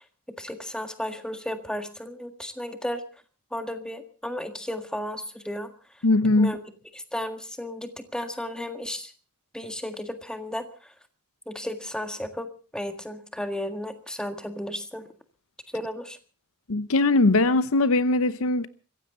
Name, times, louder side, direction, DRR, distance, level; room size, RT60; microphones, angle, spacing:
voice 1, 0.4-3.0 3.5-5.7 6.4-6.6 7.1-9.1 9.5-10.6 11.5-15.1 15.7-16.2, left 1 dB, 5° left, 1.7 m, -34 dB
voice 2, 6.0-6.6 16.7-18.7, left 2 dB, 65° left, 0.8 m, -21 dB
23.5 x 16.0 x 3.9 m
head